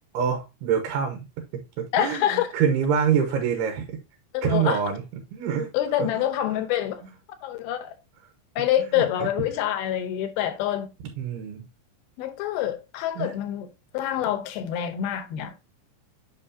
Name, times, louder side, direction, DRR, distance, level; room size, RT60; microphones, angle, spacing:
voice 1, 0.1-1.2 1.5-1.6 2.0-3.8 4.4-5.0 5.3-5.7 6.0-6.2 8.8-9.3 11.2-11.6 13.2-13.4, right 7 dB, 85° right, 3.0 m, -25 dB
voice 2, 1.9-2.5 4.3-4.8 5.7-7.0 7.4-8.0 8.6-10.9 12.2-13.7 13.9-15.5, left 11 dB, 80° left, 2.6 m, -26 dB
8.0 x 5.6 x 2.7 m
omnidirectional pair, 4.6 m